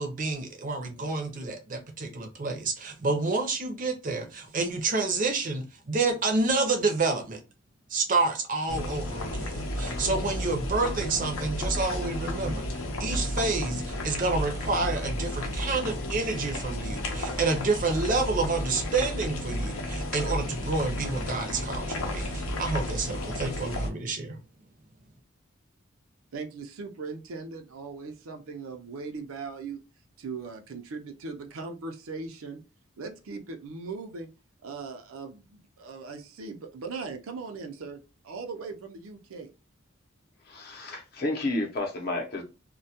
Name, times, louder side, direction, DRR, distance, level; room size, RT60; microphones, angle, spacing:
voice 1, 0.0-7.4 7.9-24.4, right 3 dB, 40° right, 0.5 m, -29 dB
sound 1, 8.7-23.9, left 1 dB, 85° left, 0.6 m, -32 dB
voice 2, 26.3-29.8 30.2-32.6 33.0-34.3 34.6-39.5, right 4 dB, 90° right, 0.5 m, -39 dB
voice 3, 40.5-42.4, left 2 dB, 50° left, 0.6 m, -31 dB
2.2 x 2.1 x 2.7 m
head